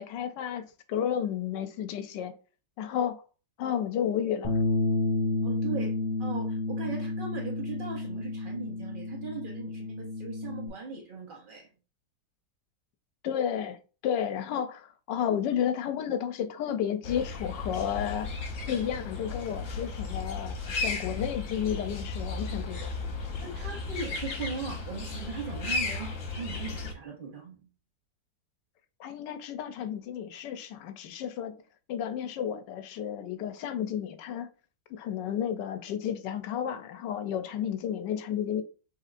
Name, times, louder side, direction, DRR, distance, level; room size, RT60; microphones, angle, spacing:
voice 1, 0.0-2.3 2.8-3.2 3.6-4.6 13.2-13.8 14.0-18.3 18.7-22.9 29.0-31.6 31.9-34.5 34.9-38.6, left 9 dB, 75° left, 1.2 m, -32 dB
Bass guitar, 4.4-10.7, left 2 dB, 30° left, 1.0 m, -31 dB
voice 2, 5.4-11.7 23.4-27.6, right 4 dB, 75° right, 0.4 m, -39 dB
sound 1, 17.0-26.9, left 3 dB, 55° left, 1.1 m, -35 dB
5.7 x 3.3 x 2.5 m
omnidirectional pair, 1.9 m